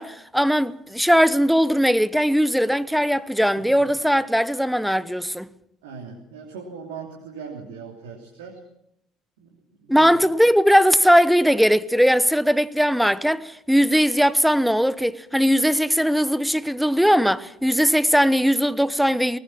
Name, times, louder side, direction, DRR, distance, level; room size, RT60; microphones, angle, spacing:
voice 1, 0.0-5.5 9.9-19.4, equal, ahead, 1.0 m, -19 dB
voice 2, 5.8-8.6 9.4-9.5 9.8-10.1, right 5 dB, 75° right, 3.0 m, -39 dB
19.5 x 19.0 x 7.3 m
hypercardioid pair, 60°, 0 cm